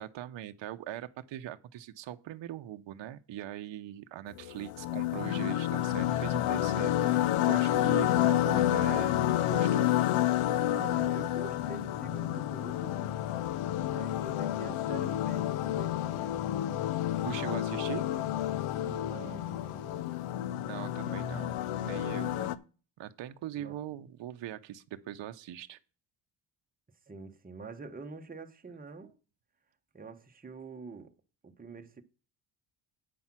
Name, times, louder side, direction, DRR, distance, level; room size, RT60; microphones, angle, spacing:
voice 1, 0.0-9.9 17.2-18.1 20.6-21.5 21.8-22.6 23.0-25.8, right 12 dB, 60° right, 0.8 m, -41 dB
sound 1, 4.4-22.6, left 13 dB, 75° left, 0.7 m, -29 dB
voice 2, 10.7-13.0 13.9-16.4 18.7-20.1 20.7-21.4 23.6-23.8 27.1-29.1 29.9-31.1 31.4-32.0, right 4 dB, 15° right, 1.1 m, -46 dB
8.6 x 5.5 x 6.0 m
cardioid pair, 70°, 50 cm